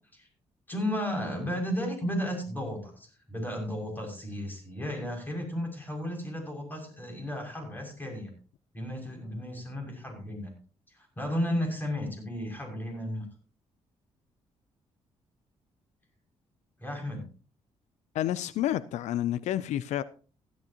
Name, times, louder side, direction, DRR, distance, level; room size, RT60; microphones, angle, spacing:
voice 1, 0.7-8.3 8.7-10.5 10.9-13.2 16.8-17.2, equal, 15° left, 6.3 m, -34 dB
voice 2, 18.1-20.0, left 12 dB, 85° left, 0.5 m, -29 dB
16.0 x 12.5 x 2.9 m
cardioid pair, 95°, 12 cm